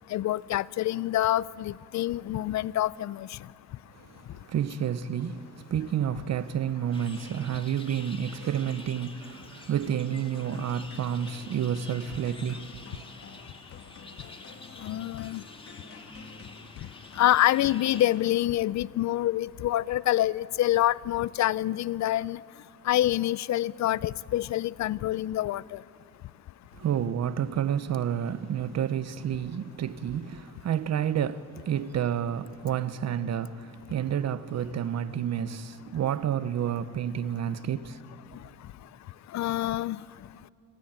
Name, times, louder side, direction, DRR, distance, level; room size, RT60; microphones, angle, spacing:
voice 1, 0.1-3.3 14.8-15.4 17.2-22.4 22.9-25.8 39.3-40.0, left 14 dB, 65° left, 0.6 m, -26 dB
voice 2, 3.9-13.0 26.8-38.0, right 9 dB, 60° right, 1.1 m, -30 dB
sound 1, 6.9-18.1, left 2 dB, 20° left, 2.3 m, -48 dB
sound 2, 10.5-18.9, left 4 dB, 50° left, 2.5 m, -51 dB
26.0 x 25.5 x 9.0 m
cardioid pair, 90°, 30 cm